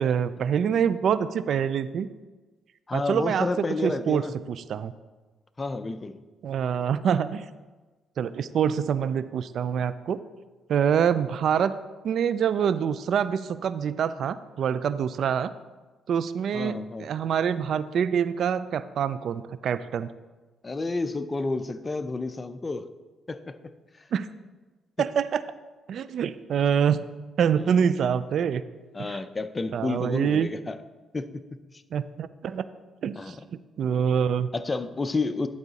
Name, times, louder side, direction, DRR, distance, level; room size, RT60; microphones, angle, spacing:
voice 1, 0.0-2.1 2.9-4.2 4.5-4.9 6.4-7.4 8.2-10.2 10.7-11.7 12.0-15.5 16.1-20.1 24.1-24.3 25.0-25.4 25.9-27.1 27.4-28.6 29.0-29.2 29.7-30.5 31.9-32.6 33.0-34.5, right 8 dB, 65° right, 15 dB, 0.3 m, -25 dB
voice 2, 2.9-4.3 5.6-6.2 16.5-17.1 20.6-22.8 23.3-23.6 27.6-27.8 28.9-30.8 31.1-31.4 33.2-33.4 34.5-35.5, left 3 dB, 30° left, 11 dB, 0.5 m, -30 dB
10.5 x 4.8 x 4.0 m, 1.2 s
cardioid pair, 75°, 0 cm